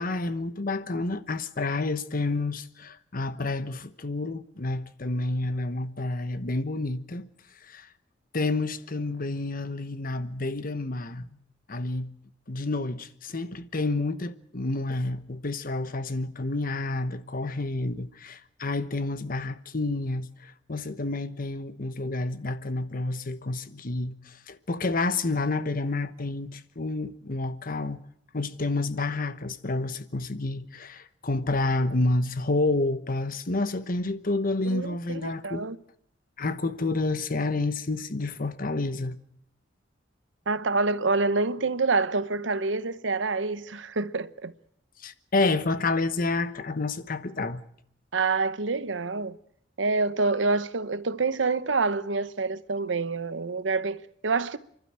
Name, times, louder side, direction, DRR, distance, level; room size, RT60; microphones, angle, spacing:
voice 1, 0.0-7.3 7.6-7.9 8.3-11.3 11.7-12.1 12.5-28.0 28.3-35.7 36.4-39.2 45.0-47.6, left 2 dB, 50° left, 1.1 m, -29 dB
voice 2, 34.6-35.8 40.5-44.5 48.1-49.4 49.8-54.6, right 3 dB, 85° right, 0.9 m, -27 dB
29.0 x 12.0 x 8.9 m
head